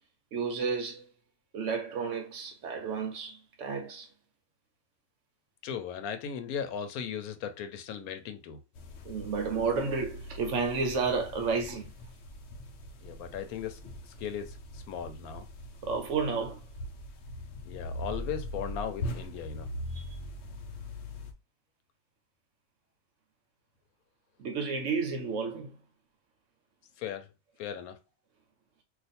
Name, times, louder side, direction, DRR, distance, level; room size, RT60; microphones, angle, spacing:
voice 1, 0.3-1.1 1.5-4.1 9.0-12.0 15.8-16.7 19.9-20.1 24.4-25.8, right 5 dB, 65° right, 0.9 m, -31 dB
voice 2, 5.6-8.6 13.0-13.8 14.1-15.5 17.6-19.7 27.0-27.3 27.6-28.0, left 8 dB, 90° left, 1.1 m, -37 dB
sound 1, 8.7-21.3, left 1 dB, 60° left, 0.8 m, -41 dB
2.5 x 2.4 x 4.1 m
omnidirectional pair, 1.5 m